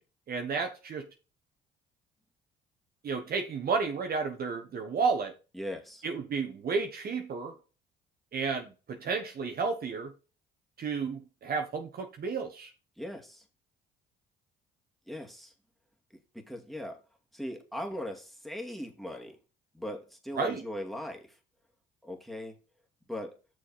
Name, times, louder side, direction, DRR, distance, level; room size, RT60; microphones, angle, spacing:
voice 1, 0.3-1.1 3.0-5.3 6.0-7.6 8.3-10.1 10.8-12.7 20.3-20.6, right 5 dB, 50° right, 1.3 m, -32 dB
voice 2, 5.5-6.0 13.0-13.4 15.1-15.5 16.3-17.0 17.3-19.4 19.7-21.3 22.0-22.6 23.1-23.4, left 1 dB, ahead, 2.2 m, -39 dB
6.3 x 5.1 x 5.6 m
supercardioid pair, 65°, 20 cm